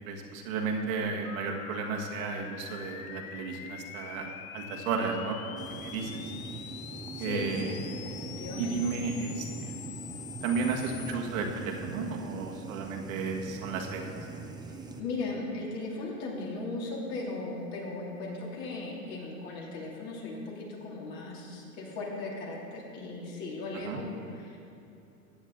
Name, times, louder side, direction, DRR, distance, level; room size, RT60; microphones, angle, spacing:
voice 1, 0.0-6.3 7.2-7.7 8.6-9.7 10.4-14.1 23.8-24.0, right 4 dB, 70° right, 1 dB, 1.7 m, -33 dB
sound 1, 1.2-11.1, left 11 dB, 75° left, 0.7 m, -45 dB
sound 2, 5.6-15.0, right 4 dB, 10° right, 0.8 m, -42 dB
voice 2, 7.2-8.8 15.0-24.6, left 2 dB, 55° left, -3 dB, 3.1 m, -37 dB
15.0 x 8.9 x 4.0 m, 2.7 s
hypercardioid pair, 95°, 42 cm